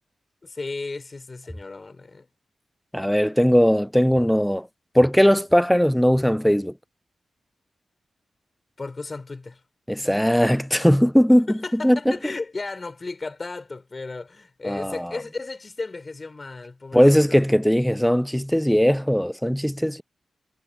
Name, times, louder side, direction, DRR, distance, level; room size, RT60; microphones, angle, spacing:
voice 1, 0.4-2.3 8.8-9.6 11.5-17.4, left 3 dB, 30° left, 4.9 m, -34 dB
voice 2, 2.9-4.7 4.9-6.7 9.9-11.5 11.7-12.1 14.6-15.1 16.9-20.0, equal, ahead, 0.3 m, -19 dB
wide cardioid pair, 150°, 0 cm